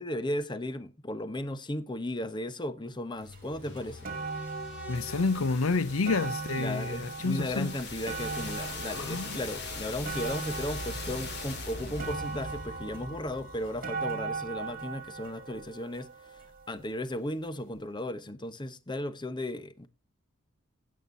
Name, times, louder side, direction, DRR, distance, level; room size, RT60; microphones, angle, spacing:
voice 1, 0.0-4.1 6.6-19.9, left 1 dB, 20° left, 0.9 m, -35 dB
sound 1, 3.2-15.1, left 3 dB, 55° left, 2.4 m, -42 dB
sound 2, 3.3-3.4 3.8-16.9 17.7-17.8, right 4 dB, 45° right, 2.1 m, -39 dB
voice 2, 4.9-7.8 8.9-9.4, left 3 dB, 85° left, 0.7 m, -29 dB
16.0 x 8.5 x 2.6 m
head